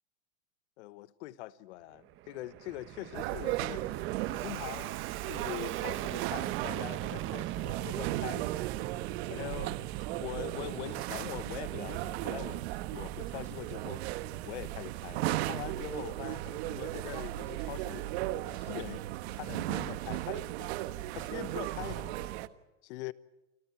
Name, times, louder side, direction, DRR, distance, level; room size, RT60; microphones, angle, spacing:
voice 1, 0.8-3.8 4.3-5.0 5.3-8.6 9.3-9.8 10.1-14.0 14.4-18.0 18.5-20.7 21.1-22.3 22.8-23.1, left 17 dB, 60° left, 1.3 m, -43 dB
Fixed-wing aircraft airplane, 1.9-18.6, right 15 dB, 30° right, 1.1 m, -42 dB
sound 1, 3.1-22.5, right 16 dB, 55° right, 1.3 m, -36 dB
29.5 x 25.5 x 4.6 m
supercardioid pair, 135°, 38 cm